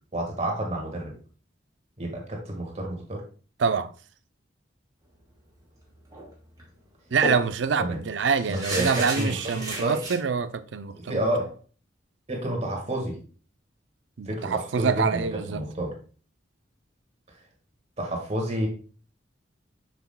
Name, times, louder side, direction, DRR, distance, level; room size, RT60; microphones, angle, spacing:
voice 1, 0.1-1.1 2.0-3.2 7.8-8.0 8.5-10.0 11.0-11.5 12.3-13.2 14.3-15.9 18.0-18.7, right 1 dB, 35° right, 1.6 m, -30 dB
voice 2, 3.6-3.9 7.1-11.2 14.2-15.6, right 5 dB, 70° right, 0.5 m, -26 dB
sound 1, 6.1-6.3 6.6-6.7 7.2-10.2, right 1 dB, 20° right, 2.5 m, -33 dB
6.9 x 6.1 x 2.2 m
head